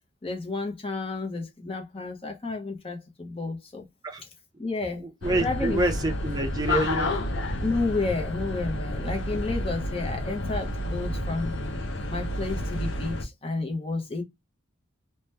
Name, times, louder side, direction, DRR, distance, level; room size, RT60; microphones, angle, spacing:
voice 1, 0.2-3.9 4.2-4.3 4.6-5.0 5.4-5.8 7.6-11.5 12.1-14.2, left 3 dB, 25° left, 0.7 m, -31 dB
voice 2, 5.0-7.3, right 1 dB, 20° right, 0.6 m, -27 dB
sound 1, 5.2-13.2, left 1 dB, 60° left, 0.5 m, -30 dB
2.9 x 2.2 x 3.2 m
head